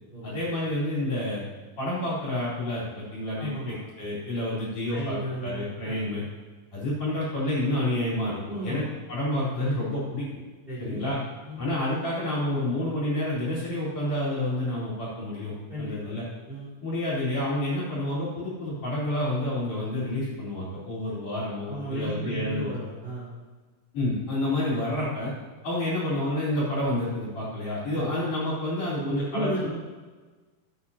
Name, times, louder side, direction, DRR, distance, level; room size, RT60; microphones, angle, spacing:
voice 1, 0.2-1.4 1.8-6.2 6.7-8.8 9.1-10.3 10.8-11.2 11.6-16.2 16.8-22.8 23.9-25.3 25.6-29.7, left 1 dB, 45° left, -7 dB, 5.1 m, -29 dB
voice 2, 3.4-3.8 4.9-6.0 8.4-8.8 10.7-11.0 11.4-11.6 15.7-16.1 16.5-16.7 21.6-23.3 27.9-28.1 28.9-29.7, right 1 dB, 15° right, -7 dB, 3.7 m, -34 dB
16.5 x 9.3 x 2.9 m, 1.4 s
omnidirectional pair, 4.2 m